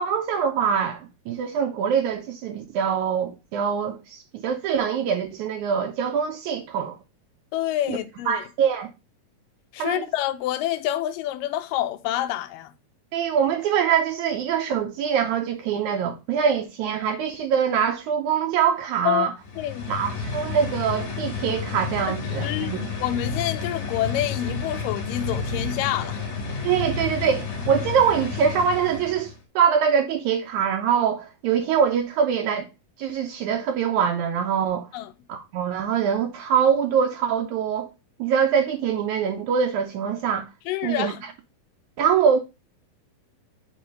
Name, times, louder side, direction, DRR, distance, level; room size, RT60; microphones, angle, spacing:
voice 1, 0.0-7.0 7.9-8.0 8.3-8.9 9.8-10.0 13.1-19.3 19.9-22.9 26.6-32.7 33.0-34.9 35.3-37.9 38.2-40.5 40.8-41.1 42.0-42.4, right 7 dB, 80° right, 1.7 m, -24 dB
voice 2, 7.5-8.4 9.7-12.7 19.0-19.3 19.6-19.9 22.1-26.2 34.9-35.1 40.7-41.2, left 13 dB, 80° left, 2.1 m, -27 dB
sound 1, 19.4-29.4, left 4 dB, 55° left, 2.9 m, -31 dB
7.8 x 3.3 x 5.1 m
omnidirectional pair, 4.3 m